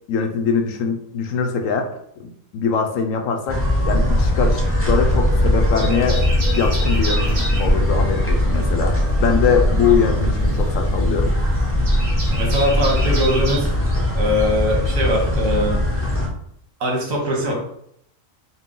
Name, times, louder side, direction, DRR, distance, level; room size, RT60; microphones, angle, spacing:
voice 1, 0.1-1.9 2.5-4.6 4.9-6.2 6.5-11.3, left 5 dB, 80° left, 4 dB, 1.0 m, -22 dB
sound 1, 3.5-16.3, left 1 dB, 15° left, 0.5 m, -20 dB
sound 2, 4.6-5.3 5.6-7.7 9.4-13.6, right 1 dB, 65° right, 1.5 m, -31 dB
voice 2, 12.3-13.7 14.1-16.0 16.8-17.5, equal, 85° right, 0 dB, 1.5 m, -21 dB
4.4 x 2.1 x 3.7 m, 0.72 s
omnidirectional pair, 1.4 m